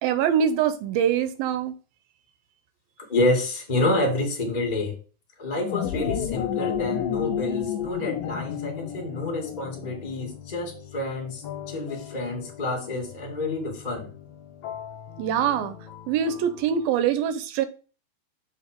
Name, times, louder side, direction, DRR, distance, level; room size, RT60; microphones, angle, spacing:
voice 1, 0.0-1.7 15.2-15.8 16.1-17.7, right 8 dB, 75° right, 2.3 m, -24 dB
voice 2, 3.0-4.9 5.4-14.1, left 2 dB, 20° left, 1.3 m, -28 dB
sound 1, 5.5-10.1, left 9 dB, 85° left, 1.9 m, -30 dB
sound 2, 5.7-5.9 6.6-16.9, left 9 dB, 60° left, 2.2 m, -43 dB
6.4 x 4.8 x 6.6 m
omnidirectional pair, 4.7 m